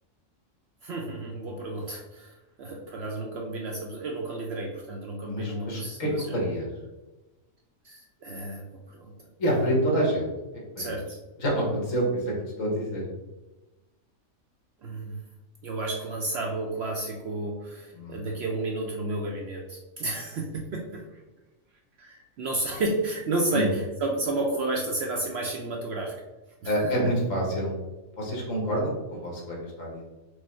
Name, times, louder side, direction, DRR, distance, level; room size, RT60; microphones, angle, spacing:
voice 1, 0.8-2.3 2.6-6.4 7.8-8.6 8.9-9.1 9.5-9.7 10.8-11.2 14.8-15.2 15.6-21.0 22.0-26.1 26.6-26.8, right 2 dB, 60° right, 0 dB, 0.7 m, -31 dB
voice 2, 5.2-6.7 9.4-10.3 10.7-11.0 11.4-13.0 17.9-18.2 23.5-23.7 26.6-27.7 28.2-30.0, right 1 dB, 65° left, -2 dB, 1.6 m, -27 dB
4.8 x 2.0 x 4.2 m, 1.1 s
omnidirectional pair, 1.5 m